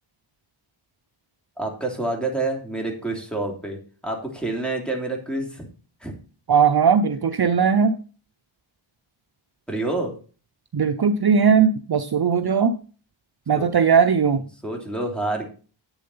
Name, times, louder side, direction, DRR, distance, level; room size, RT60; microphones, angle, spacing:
voice 1, 1.6-5.7 6.0-6.1 9.7-10.1 13.5-13.7 14.6-15.5, right 2 dB, ahead, 1 dB, 3.2 m, -27 dB
voice 2, 6.5-7.9 10.7-12.8 13.5-14.4, right 6 dB, 50° right, 8 dB, 0.7 m, -18 dB
8.6 x 7.3 x 5.6 m, 0.38 s
wide cardioid pair, 65°, 49 cm